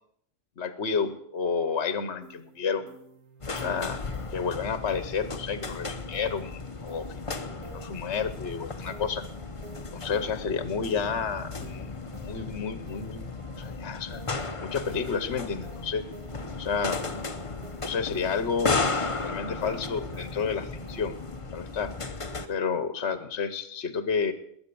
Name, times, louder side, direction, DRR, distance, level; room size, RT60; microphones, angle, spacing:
voice 1, 0.6-2.9 3.5-4.0 4.3-7.1 7.7-9.2 9.9-11.9 12.2-13.3 13.6-14.2 14.6-16.0 16.6-17.0 17.8-18.9 19.1-21.2 21.5-21.9 22.5-24.3, left 6 dB, 50° left, 12 dB, 1.3 m, -30 dB
sound 1, 2.2-21.0, right 4 dB, 90° right, 2.3 m, -52 dB
sound 2, 3.4-22.5, left 3 dB, 25° left, 0.8 m, -35 dB
21.0 x 9.0 x 6.9 m, 0.69 s
omnidirectional pair, 1.5 m